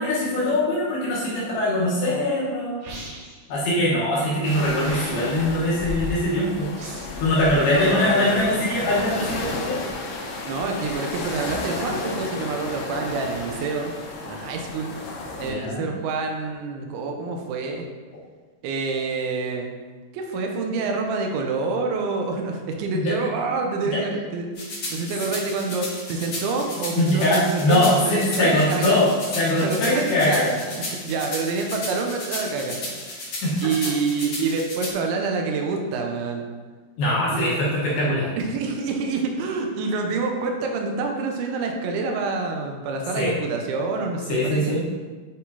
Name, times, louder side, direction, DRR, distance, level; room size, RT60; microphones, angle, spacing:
voice 1, 0.0-2.8 3.5-6.7 7.2-9.8 15.4-15.9 22.9-23.1 23.8-24.0 27.0-30.5 33.4-33.7 37.0-38.3 43.2-43.3 44.3-44.8, left 1 dB, 70° left, -7 dB, 2.7 m, -22 dB
sound 1, 2.8-3.5 4.8-5.5 6.8-7.2, right 2 dB, 70° right, 2.2 m, -39 dB
sound 2, 4.4-15.5, left 3 dB, 85° left, 3.0 m, -32 dB
voice 2, 7.6-8.6 10.4-13.9 14.2-15.1 15.4-17.9 18.6-19.7 20.1-29.0 29.6-33.0 33.6-36.4 37.2-37.8 38.4-44.8, right 4 dB, 85° right, 2 dB, 3.0 m, -27 dB
sound 3, 24.6-34.9, left 2 dB, 50° left, 1.8 m, -34 dB
9.6 x 3.8 x 2.7 m, 1.4 s
omnidirectional pair, 5.3 m